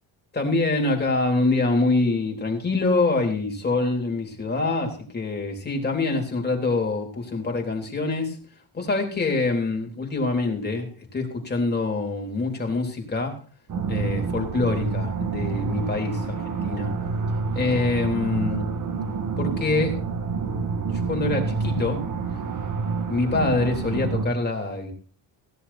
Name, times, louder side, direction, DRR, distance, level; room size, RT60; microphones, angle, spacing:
voice 1, 0.3-8.4 8.7-13.3 13.9-16.2 16.5-16.9 17.5-18.7 19.4-20.0 20.9-22.0 23.1-24.9, left 3 dB, 20° left, 1 dB, 3.7 m, -25 dB
sound 1, 13.7-24.2, right 4 dB, 40° right, 2.0 m, -28 dB
17.5 x 11.0 x 4.3 m, 0.42 s
cardioid pair, 150°, 47 cm